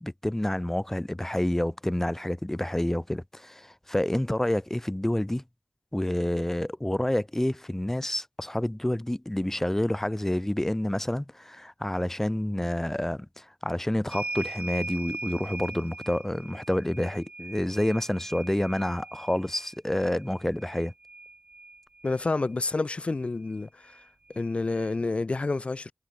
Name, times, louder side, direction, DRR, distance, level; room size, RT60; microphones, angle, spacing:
voice 1, 0.0-5.4 5.9-20.9, left 1 dB, 15° left, 0.8 m, -28 dB
sound 1, 14.1-22.2 23.5-23.6 23.9-24.9, right 3 dB, 55° right, 2.0 m, -41 dB
voice 2, 22.0-24.0 24.3-25.9, left 3 dB, 50° left, 0.5 m, -29 dB
wide cardioid pair, 70°, 2 cm